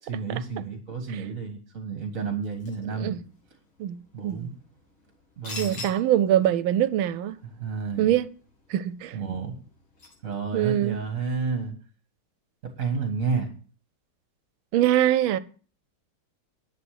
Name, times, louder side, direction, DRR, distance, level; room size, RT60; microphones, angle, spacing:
voice 1, 0.0-3.2 4.1-4.6 5.4-5.9 7.4-8.1 9.1-9.5 10.2-11.7 12.6-13.5, right 5 dB, 45° right, 1.8 m, -31 dB
sound 1, 2.4-10.4, left 3 dB, 85° left, 3.6 m, -46 dB
voice 2, 3.8-4.5 5.6-7.3 8.0-8.3 8.7-9.2 10.5-11.0 14.7-15.4, right 12 dB, 80° right, 1.5 m, -23 dB
11.0 x 7.6 x 6.4 m
omnidirectional pair, 2.2 m